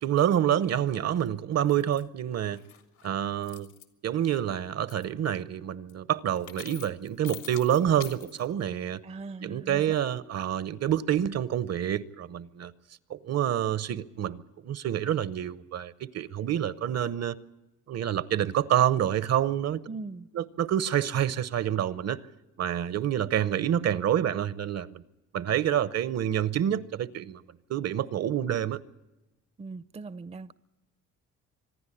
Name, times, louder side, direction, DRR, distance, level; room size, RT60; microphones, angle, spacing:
voice 1, 0.0-2.6 3.0-3.7 4.0-9.0 9.4-12.7 13.1-17.4 17.9-19.8 20.3-22.2 22.6-25.0 25.3-27.4 27.7-28.8, right 10 dB, 55° right, 0.8 m, -27 dB
sound 1, 1.1-1.3 1.7-2.0 2.4-3.1 3.4-3.8 4.2-4.6 4.9-5.0 5.9-6.0 6.3-8.5, left 9 dB, 80° left, 1.9 m, -46 dB
voice 2, 9.0-10.0 19.9-20.3 29.6-30.5, right 3 dB, 20° right, 0.6 m, -40 dB
25.5 x 10.5 x 10.0 m
cardioid pair, 90°, 30 cm